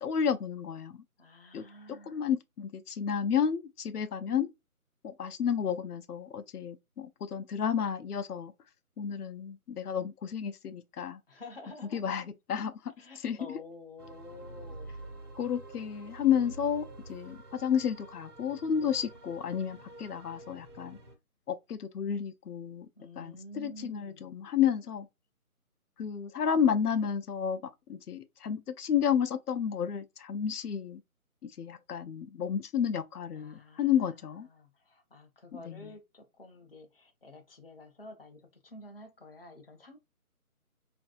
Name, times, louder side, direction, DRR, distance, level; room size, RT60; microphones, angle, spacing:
voice 1, 0.0-1.0 1.5-1.6 2.1-4.5 5.0-8.5 9.0-11.2 11.9-12.2 12.5-12.7 13.2-13.4 15.4-21.0 21.5-22.9 23.2-25.1 26.0-31.0 31.6-34.5 35.7-35.8, left 8 dB, 90° left, 0.6 m, -31 dB
voice 2, 1.2-2.3 11.3-12.3 13.0-15.6 23.0-24.3 33.4-40.0, left 2 dB, 40° left, 0.5 m, -50 dB
sound 1, 14.0-21.2, right 2 dB, 80° right, 1.0 m, -48 dB
2.7 x 2.6 x 2.3 m
figure-of-eight pair, 165°, 44 cm